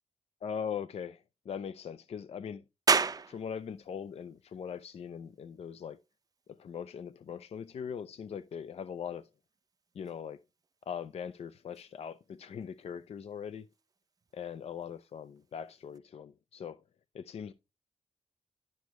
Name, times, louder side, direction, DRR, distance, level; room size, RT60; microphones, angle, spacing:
voice 1, 0.4-2.6 3.2-6.0 6.5-9.3 10.0-10.4 10.9-13.7 14.3-16.8 17.1-17.5, left 7 dB, 60° left, 0.4 m, -40 dB
sound 1, 2.9-16.0, right 5 dB, 30° right, 0.5 m, -39 dB
10.5 x 6.4 x 3.1 m
wide cardioid pair, 135°, 12 cm